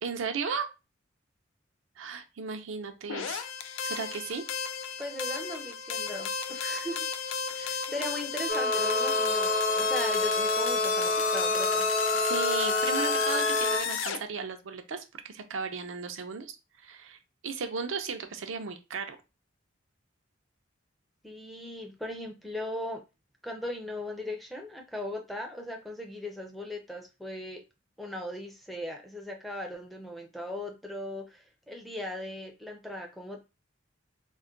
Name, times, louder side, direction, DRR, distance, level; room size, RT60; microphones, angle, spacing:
voice 1, 0.0-0.7 2.0-3.4 3.8-4.4 7.5-7.7 12.2-17.2 17.4-19.2, right 5 dB, 80° right, 7 dB, 0.5 m, -35 dB
sound 1, 3.1-14.2, left 6 dB, 85° left, 0.4 m, -33 dB
voice 2, 5.0-7.0 7.6-11.9 21.2-23.0 23.4-27.6 28.0-33.4, left 1 dB, ahead, 1 dB, 0.5 m, -38 dB
sound 2, 8.5-13.8, left 2 dB, 40° left, 0.7 m, -27 dB
2.3 x 2.1 x 3.8 m, 0.27 s
head